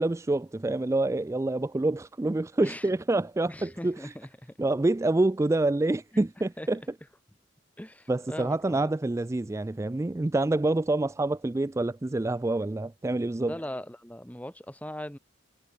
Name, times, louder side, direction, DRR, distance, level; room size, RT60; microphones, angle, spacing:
voice 1, 0.0-4.1 4.6-6.8 8.1-13.6, right 2 dB, 15° right, 0.3 m, -27 dB
voice 2, 3.5-4.5 6.6-6.7 7.8-8.9 13.5-15.2, left 1 dB, 10° left, 1.4 m, -40 dB
head